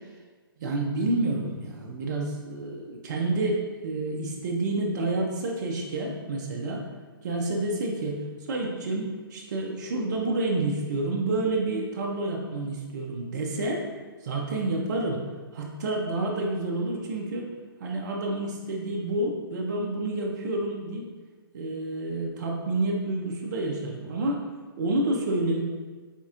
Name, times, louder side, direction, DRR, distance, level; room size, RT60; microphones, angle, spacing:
voice 1, 0.6-6.8 7.2-13.8 14.2-15.2 15.5-17.5 17.8-21.1 21.5-24.4 24.8-25.6, right 2 dB, 50° right, 0 dB, 0.6 m, -29 dB
4.0 x 3.5 x 2.4 m, 1.4 s
figure-of-eight pair, 135°, 13 cm